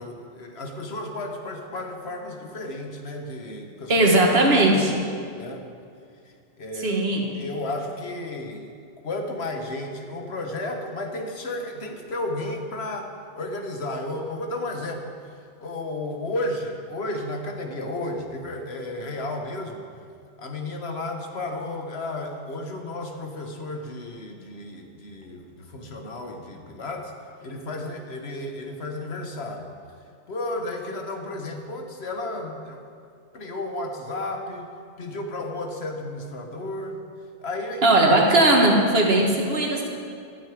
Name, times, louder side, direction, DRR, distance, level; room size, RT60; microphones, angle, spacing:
voice 1, 0.0-4.1 4.7-4.9 5.3-5.7 6.2-7.0 7.3-8.7 9.0-13.1 13.4-19.9 20.4-27.1 27.4-29.7 30.3-32.9 33.3-34.7 35.0-37.0 37.4-37.8 39.2-39.3, left 2 dB, 65° left, 4 dB, 1.6 m, -33 dB
voice 2, 3.9-4.9 6.8-7.2 37.8-39.9, right 2 dB, 60° right, 0 dB, 1.9 m, -18 dB
13.5 x 13.0 x 5.0 m, 2.4 s
omnidirectional pair, 1.2 m